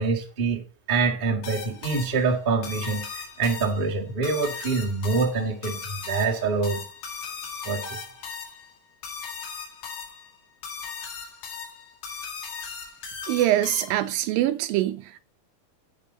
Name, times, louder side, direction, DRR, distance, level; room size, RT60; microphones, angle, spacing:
voice 1, 0.0-6.8 7.6-8.0, right 4 dB, 40° right, 0.7 m, -26 dB
sound 1, 1.4-14.2, left 6 dB, 65° left, 3.4 m, -38 dB
voice 2, 13.3-15.2, right 13 dB, 80° right, 2.1 m, -24 dB
10.5 x 7.7 x 4.0 m
omnidirectional pair, 4.4 m